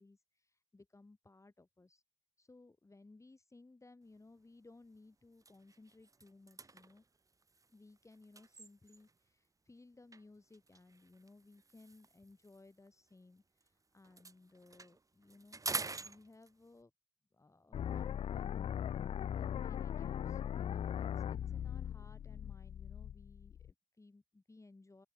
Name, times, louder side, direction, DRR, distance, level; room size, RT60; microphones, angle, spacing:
voice 1, 0.0-2.0 2.4-7.0 7.7-16.9 17.3-25.1, left 2 dB, 15° left, 5.1 m, -61 dB
sound 1, 4.2-4.4 4.8-5.0 5.3-9.3 10.1-13.7 14.0-16.8, right 3 dB, 20° right, 1.0 m, -47 dB
sound 2, 17.7-23.7, left 9 dB, 35° left, 0.4 m, -39 dB
open air
supercardioid pair, 70°, 17 cm